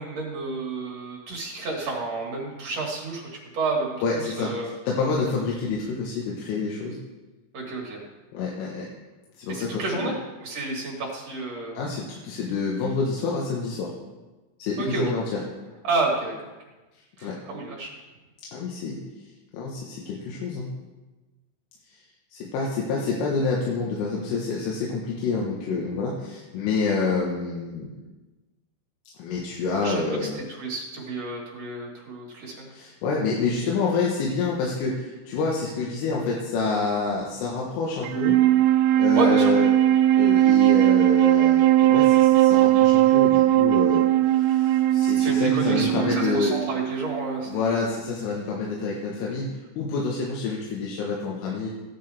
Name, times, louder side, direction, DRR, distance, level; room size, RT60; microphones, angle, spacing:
voice 1, 0.0-4.7 7.5-8.0 9.5-10.1 10.4-11.8 14.8-15.0 15.8-16.3 17.2-17.9 29.8-32.7 39.2-39.5 45.1-47.7, right 3 dB, 55° right, -3 dB, 1.9 m, -30 dB
voice 2, 4.0-7.0 8.3-8.9 9.4-10.1 11.8-13.9 14.6-15.4 17.2-17.4 18.5-19.0 19.5-20.7 21.9-22.0 22.3-27.9 29.2-30.4 32.7-38.4 39.0-39.7 40.2-46.5 47.5-51.7, left 4 dB, 85° left, -2 dB, 3.9 m, -28 dB
Wind instrument woodwind instrument, 38.0-47.5, right 13 dB, 90° right, 3.1 m, -19 dB
16.0 x 10.5 x 3.4 m, 1.2 s
omnidirectional pair, 5.6 m